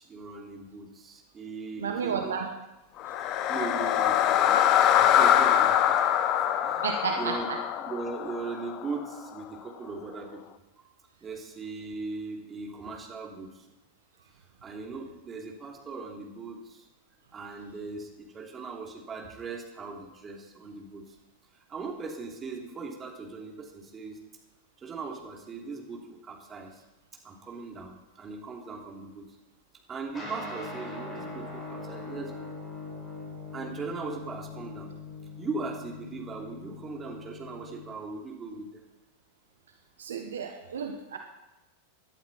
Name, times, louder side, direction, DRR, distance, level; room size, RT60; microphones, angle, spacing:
voice 1, 0.0-2.3 3.5-6.1 6.6-6.8 7.2-7.5 7.8-10.4 11.2-13.6 14.6-16.9 17.3-21.1 21.7-24.2 24.8-26.8 27.2-29.3 29.9-32.4 33.5-34.9 35.4-38.8, right 4 dB, 20° right, 0 dB, 3.0 m, -39 dB
voice 2, 1.8-2.5 6.8-7.6 40.0-41.2, right 6 dB, 65° right, 4 dB, 1.3 m, -32 dB
sound 1, 3.0-9.1, left 10 dB, 40° left, 0.8 m, -24 dB
sound 2, 30.1-37.9, left 3 dB, 15° left, 5.9 m, -41 dB
17.5 x 11.5 x 4.2 m, 0.99 s
figure-of-eight pair, 90°, 0 cm